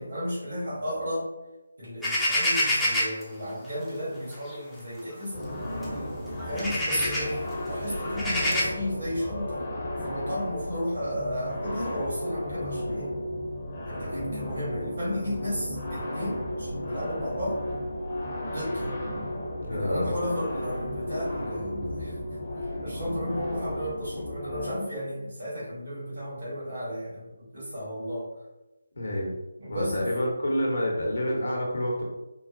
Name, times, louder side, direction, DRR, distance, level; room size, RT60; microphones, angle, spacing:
voice 1, 0.0-1.3 1.8-5.4 6.5-9.7 10.0-13.1 13.8-17.6 18.5-19.0 19.7-28.3 29.6-30.2, equal, 55° right, -7 dB, 1.4 m, -34 dB
sound 1, 2.0-3.2 4.3-4.5 5.0-5.1 5.8-5.9 6.4-7.3 8.0-8.6, left 1 dB, ahead, 0.6 m, -26 dB
sound 2, 5.3-24.8, left 1 dB, 30° left, 0.8 m, -34 dB
voice 2, 19.6-20.1 29.0-29.4 29.7-32.0, equal, 60° left, -2 dB, 0.9 m, -28 dB
3.8 x 2.1 x 2.5 m, 0.99 s
figure-of-eight pair, 150°, 0 cm